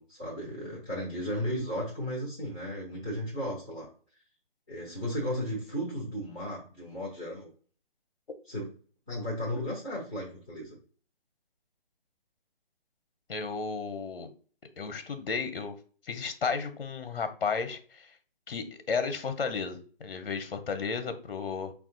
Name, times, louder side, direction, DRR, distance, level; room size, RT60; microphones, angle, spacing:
voice 1, 0.0-3.9 4.7-7.5 8.5-8.7 9.1-10.8, equal, 10° right, -14 dB, 0.6 m, -35 dB
voice 2, 13.3-14.3 14.8-15.8 16.1-18.1 18.5-21.7, left 5 dB, 65° left, 9 dB, 0.8 m, -33 dB
5.3 x 2.4 x 3.8 m, 0.41 s
hypercardioid pair, 175°, 30 cm